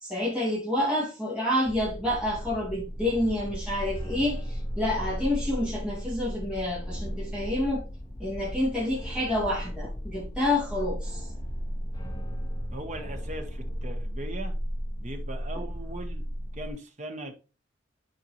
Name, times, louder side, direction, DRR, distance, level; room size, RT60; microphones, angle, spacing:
voice 1, 0.0-7.8 8.2-11.3, left 1 dB, 5° right, 2.3 m, -28 dB
sound 1, 1.7-16.7, equal, 20° left, 1.2 m, -35 dB
voice 2, 12.7-14.5 15.0-16.2 16.5-17.3, right 1 dB, 35° right, 1.1 m, -39 dB
8.9 x 4.5 x 3.1 m
head